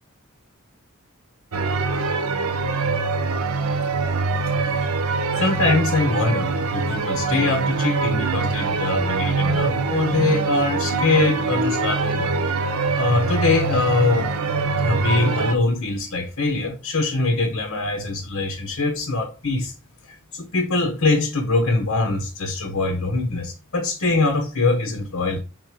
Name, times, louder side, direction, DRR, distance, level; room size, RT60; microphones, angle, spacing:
sound 1, 1.5-15.6, right 4 dB, 90° right, 0.8 m, -23 dB
voice 1, 5.3-12.3 13.0-14.3 14.8-19.7 20.1-25.4, left 3 dB, 80° left, 1.1 m, -23 dB
6.6 x 3.8 x 4.7 m
head